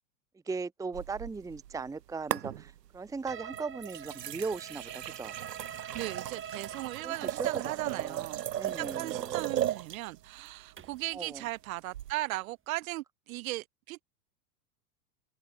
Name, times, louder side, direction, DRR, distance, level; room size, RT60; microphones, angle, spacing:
voice 1, 0.4-5.3 7.0-8.2 8.5-9.4 11.1-11.4, right 4 dB, 5° right, 1.0 m, -38 dB
sound 1, 0.9-1.9 2.3-3.0 3.5-10.1 11.9-12.1, right 11 dB, 85° right, 0.7 m, -36 dB
sound 2, 3.3-11.1, right 8 dB, 25° right, 5.4 m, -46 dB
voice 2, 5.9-14.0, right 18 dB, 55° right, 2.1 m, -37 dB
figure-of-eight pair, 90°, 48 cm